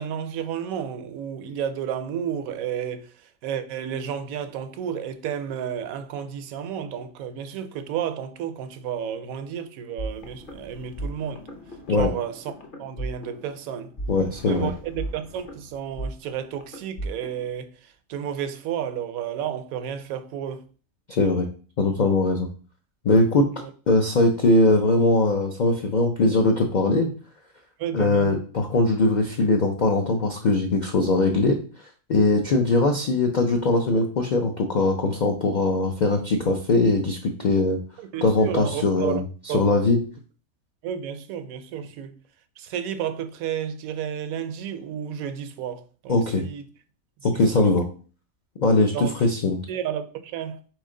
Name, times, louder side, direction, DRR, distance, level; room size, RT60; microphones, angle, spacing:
voice 1, 0.0-3.1 3.4-11.5 11.9-12.4 12.8-13.9 14.5-20.7 23.5-23.7 27.8-28.4 38.0-39.2 39.5-39.9 40.8-42.2 42.6-46.6 47.5-47.7 48.9-49.2 49.7-50.6, right 9 dB, 80° right, 1.0 m, -32 dB
sound 1, 10.0-17.5, right 1 dB, 45° left, 0.8 m, -37 dB
voice 2, 14.1-14.7 21.1-21.5 21.8-22.5 23.0-23.5 23.9-27.1 27.9-31.6 32.1-37.8 38.2-40.0 46.1-46.4 47.2-47.9 48.6-49.6, left 2 dB, 65° left, 0.4 m, -21 dB
4.3 x 3.1 x 3.7 m
omnidirectional pair, 1.5 m